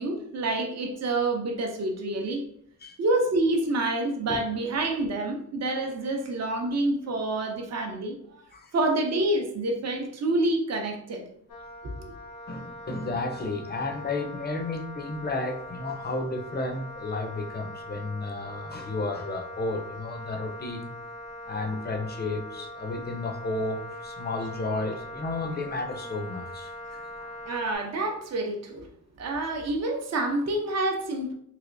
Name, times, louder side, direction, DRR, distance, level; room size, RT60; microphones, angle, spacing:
voice 1, 0.0-2.4 3.0-8.4 8.7-11.2 11.8-11.9 27.5-28.9 29.2-31.3, right 2 dB, 50° right, 2 dB, 0.6 m, -27 dB
Wind instrument woodwind instrument, 11.5-27.8, left 1 dB, 90° left, 0.9 m, -42 dB
voice 2, 12.5-20.9 21.5-26.7 27.2-27.3, left 2 dB, 30° left, 4 dB, 0.5 m, -32 dB
3.3 x 2.9 x 2.5 m, 0.69 s
wide cardioid pair, 165°, 33 cm